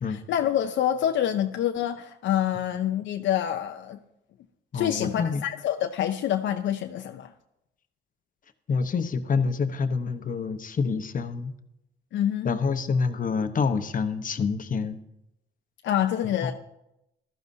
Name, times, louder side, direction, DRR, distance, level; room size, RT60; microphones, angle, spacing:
voice 1, 0.1-4.0 4.7-7.3 12.1-12.5 15.8-16.5, left 10 dB, 75° left, 0.6 m, -26 dB
voice 2, 4.7-5.4 8.7-11.5 12.4-15.0 16.2-16.5, left 5 dB, 45° left, 1.0 m, -27 dB
15.0 x 12.5 x 2.7 m
cardioid pair, 90°, 20 cm